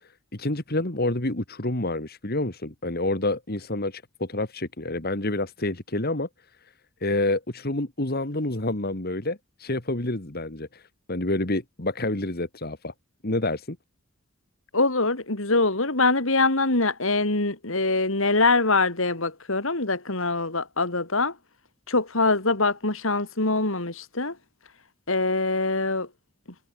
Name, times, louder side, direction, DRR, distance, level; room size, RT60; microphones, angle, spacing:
voice 1, 0.3-6.3 7.0-10.8 11.1-12.9 13.2-13.8, left 2 dB, 45° left, 2.2 m, -28 dB
voice 2, 14.7-21.3 21.9-24.4 25.1-26.1, left 3 dB, 65° left, 3.4 m, -23 dB
head